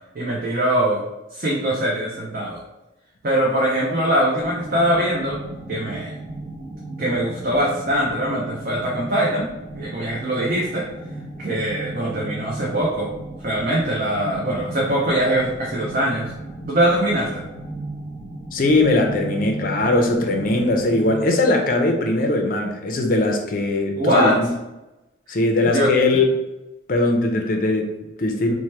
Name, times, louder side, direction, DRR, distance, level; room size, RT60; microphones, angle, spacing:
voice 1, 0.1-1.0 1.3-2.6 3.2-5.4 5.7-6.1 7.0-9.5 9.7-10.8 11.4-13.1 13.4-16.3 16.6-17.4 24.0-24.4 25.6-25.9, right 1 dB, 45° right, -4 dB, 0.5 m, -22 dB
sound 1, 4.4-21.4, right 2 dB, ahead, 0.6 m, -35 dB
voice 2, 18.5-24.5 25.3-26.3 26.9-28.5, left 2 dB, 45° left, 2 dB, 0.5 m, -20 dB
2.8 x 2.1 x 3.2 m, 0.98 s
head